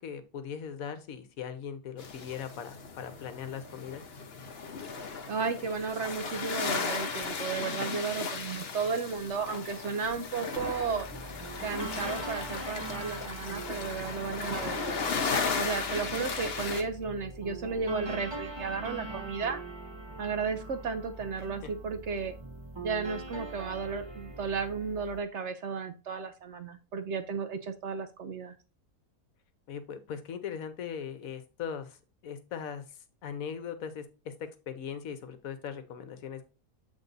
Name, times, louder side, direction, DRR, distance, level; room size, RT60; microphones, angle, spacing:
voice 1, 0.0-4.0 21.4-21.7 29.7-36.5, left 7 dB, 65° left, 11 dB, 1.2 m, -40 dB
sound 1, 2.0-16.8, left 5 dB, 50° left, 0.9 m, -36 dB
voice 2, 5.3-11.1 11.6-15.0 15.5-19.6 20.2-22.4 22.8-28.6, right 5 dB, 60° right, 9 dB, 0.8 m, -34 dB
sound 2, 10.6-25.2, right 2 dB, 25° right, 0.6 m, -42 dB
7.9 x 3.6 x 4.0 m, 0.32 s
omnidirectional pair, 1.6 m